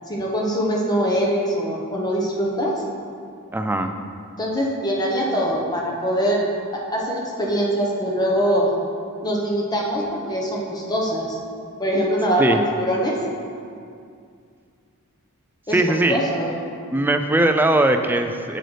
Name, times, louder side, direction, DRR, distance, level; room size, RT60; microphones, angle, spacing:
voice 1, 0.1-2.8 4.4-6.4 6.7-8.7 9.2-11.4 11.8-13.2 15.7-15.8 16.1-16.5, equal, 20° left, -2 dB, 1.0 m, -23 dB
voice 2, 3.5-3.9 12.4-12.6 15.7-16.2 16.9-18.6, right 2 dB, 10° right, 6 dB, 0.3 m, -19 dB
7.8 x 7.8 x 3.3 m, 2.3 s
head